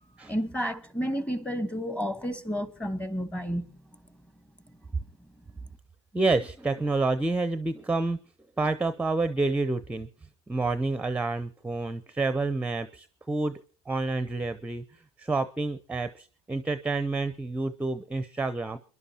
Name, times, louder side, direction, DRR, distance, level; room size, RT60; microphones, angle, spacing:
voice 1, 0.3-3.7, equal, 10° left, 1.3 m, -31 dB
voice 2, 6.1-8.2 8.6-10.1 10.5-13.6 13.9-18.8, right 3 dB, 10° right, 0.6 m, -28 dB
29.0 x 11.0 x 2.9 m
hypercardioid pair, 80°, 14 cm